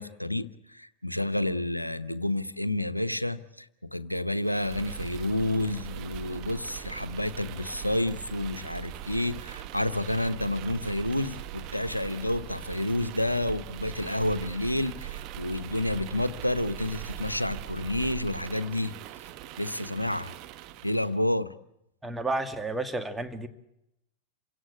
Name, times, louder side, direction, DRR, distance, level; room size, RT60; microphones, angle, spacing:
voice 1, 0.0-18.9 19.6-20.3 20.8-21.5, left 1 dB, 90° left, 15 dB, 1.0 m, -30 dB
sound 1, 4.4-21.1, right 12 dB, 40° right, 1.3 m, -41 dB
voice 2, 22.0-23.5, right 2 dB, 10° right, 8 dB, 2.0 m, -31 dB
28.0 x 17.5 x 8.3 m, 0.84 s
figure-of-eight pair, 90°, 0 cm